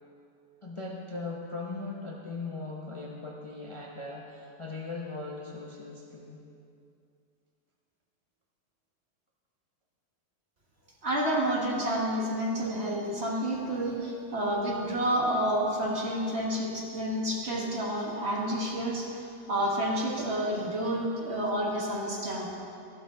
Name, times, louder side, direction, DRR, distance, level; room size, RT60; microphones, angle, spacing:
voice 1, 0.6-6.5, left 3 dB, 20° left, -3 dB, 0.9 m, -39 dB
voice 2, 11.0-22.6, right 1 dB, 40° right, -2 dB, 1.9 m, -29 dB
14.0 x 12.5 x 3.9 m, 2.5 s
omnidirectional pair, 1.8 m